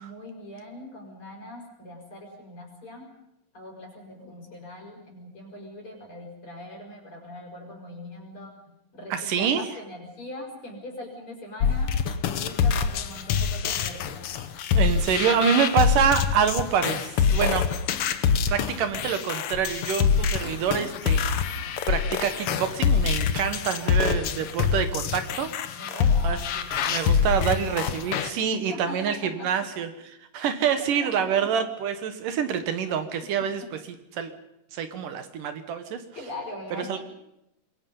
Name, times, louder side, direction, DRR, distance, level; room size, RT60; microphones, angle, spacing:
voice 1, 0.0-3.1 3.5-14.3 23.8-24.1 25.8-26.5 28.5-29.7 30.8-31.5 33.4-33.5 36.1-37.0, left 1 dB, 35° left, 1 dB, 6.0 m, -41 dB
voice 2, 9.1-9.6 14.7-17.7 18.5-25.5 25.8-26.0 26.2-26.4 26.7-29.9 30.3-33.8 34.1-34.3 34.7-36.0 36.9-37.0, right 7 dB, 70° right, 9 dB, 2.7 m, -26 dB
sound 1, 11.6-28.3, left 6 dB, 70° left, 1.4 m, -25 dB
26.5 x 22.0 x 5.5 m, 0.84 s
omnidirectional pair, 4.0 m